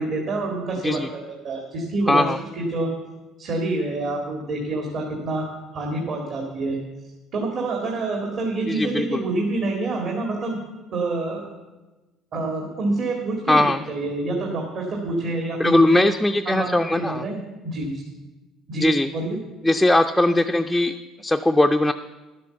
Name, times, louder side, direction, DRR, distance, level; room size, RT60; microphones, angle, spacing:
voice 1, 0.0-2.3 2.6-2.9 3.4-5.5 5.7-6.8 7.3-10.6 10.9-11.4 12.3-16.0 16.5-17.4 17.6-18.0 18.7-19.4, right 2 dB, 55° right, 1 dB, 2.0 m, -27 dB
voice 2, 2.1-2.4 8.7-9.2 13.5-13.8 15.6-17.2 18.8-19.1 19.6-21.9, left 1 dB, 5° left, 4 dB, 0.5 m, -20 dB
11.0 x 7.6 x 6.9 m, 1.1 s
cardioid pair, 105°, 0 cm